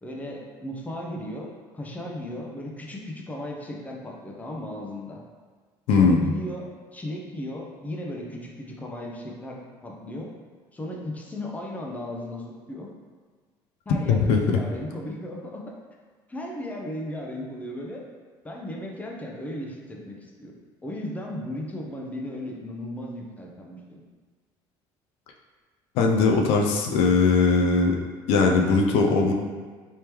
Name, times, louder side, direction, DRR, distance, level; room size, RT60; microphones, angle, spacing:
voice 1, 0.0-5.2 5.9-10.3 10.7-12.9 13.9-15.8 16.3-18.0 18.4-20.6 20.8-24.0, left 1 dB, 15° left, -1 dB, 0.6 m, -36 dB
voice 2, 5.9-6.2 14.1-14.6 26.0-28.0 28.3-29.3, left 4 dB, 75° left, 2 dB, 0.4 m, -20 dB
3.4 x 3.0 x 2.9 m, 1.5 s
supercardioid pair, 90°, 10 cm